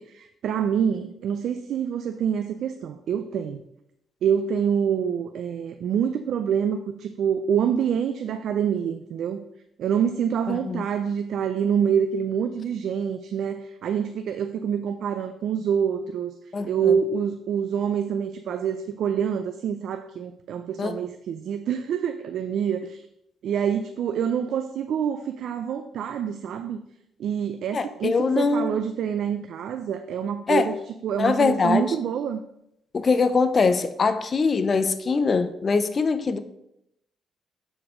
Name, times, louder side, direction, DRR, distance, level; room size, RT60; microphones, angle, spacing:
voice 1, 0.0-3.6 4.2-9.4 9.8-16.3 16.6-23.0 23.4-26.8 27.2-30.8 31.0-32.4, right 8 dB, 70° right, 8 dB, 0.4 m, -26 dB
voice 2, 10.5-10.9 16.5-16.9 20.8-21.0 27.7-28.8 30.5-30.7 31.2-31.9 32.9-36.4, left 4 dB, 40° left, 11 dB, 0.6 m, -23 dB
6.8 x 4.3 x 4.9 m, 0.81 s
cardioid pair, 90°, 0 cm